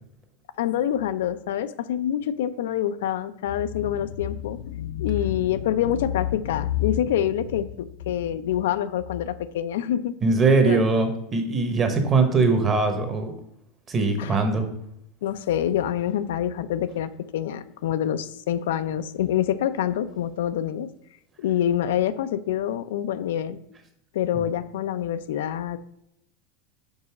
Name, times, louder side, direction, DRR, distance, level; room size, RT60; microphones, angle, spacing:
voice 1, 0.6-10.1 10.7-10.8 14.2-14.4 15.2-20.9 21.4-23.6 24.1-25.8, left 10 dB, 85° left, 12 dB, 0.4 m, -26 dB
voice 2, 10.2-13.3 13.9-14.7 24.3-24.5, right 3 dB, 25° right, 5 dB, 1.0 m, -21 dB
5.3 x 3.9 x 5.9 m, 0.78 s
supercardioid pair, 145°, 0 cm